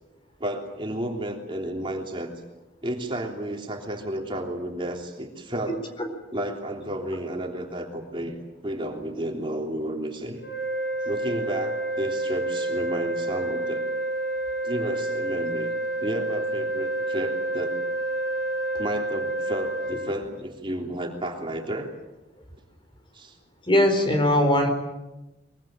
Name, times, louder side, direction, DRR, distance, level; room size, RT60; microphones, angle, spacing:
voice 1, 0.4-2.3 2.8-5.8 6.3-8.3 8.6-10.4 11.0-13.8 14.6-15.7 16.0-17.7 18.8-21.9 23.1-23.3, right 1 dB, 30° right, 2 dB, 3.3 m, -32 dB
sound 1, 10.4-20.1, right 2 dB, 70° left, 6.0 m, -29 dB
voice 2, 23.7-24.7, left 1 dB, 30° left, 5 dB, 4.5 m, -20 dB
23.5 x 23.5 x 9.0 m, 1.0 s
head